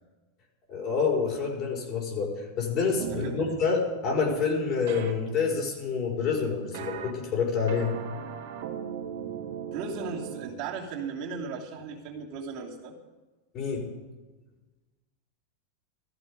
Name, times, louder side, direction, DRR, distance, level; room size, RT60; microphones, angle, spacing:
voice 1, 0.7-7.9 13.5-13.9, left 5 dB, 40° left, -1 dB, 5.4 m, -27 dB
sound 1, 3.0-3.4 4.9-5.1 6.7-7.1 7.7-10.5, right 9 dB, 70° right, 2.0 m, -37 dB
voice 2, 3.2-3.6 9.7-12.9, right 5 dB, 50° right, -1 dB, 2.8 m, -36 dB
15.5 x 14.0 x 5.2 m, 1.2 s
supercardioid pair, 135°, 0 cm